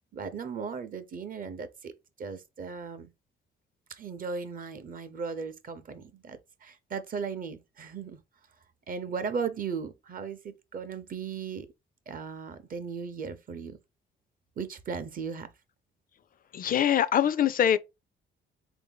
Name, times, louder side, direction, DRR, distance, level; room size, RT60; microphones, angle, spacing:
voice 1, 0.1-1.9 2.2-3.1 3.9-8.2 8.9-11.7 12.1-13.8 14.6-15.5, right 5 dB, 45° right, 0.6 m, -37 dB
voice 2, 16.5-17.8, left 9 dB, 45° left, 0.4 m, -23 dB
3.4 x 2.6 x 3.8 m
cardioid pair, 90°, 20 cm